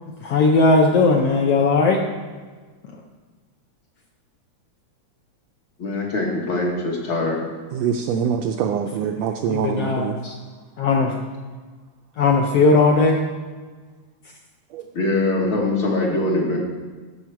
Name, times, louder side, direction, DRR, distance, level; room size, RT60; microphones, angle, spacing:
voice 1, 0.2-2.0 9.5-10.3 10.8-11.1 12.2-13.2, left 3 dB, 75° left, 1 dB, 1.5 m, -17 dB
voice 2, 5.8-7.4 14.9-16.6, left 2 dB, 50° left, -1 dB, 1.7 m, -22 dB
voice 3, 7.7-10.2 14.7-14.8, right 7 dB, 80° right, 4 dB, 1.5 m, -24 dB
14.0 x 5.5 x 4.6 m, 1.4 s
omnidirectional pair, 3.4 m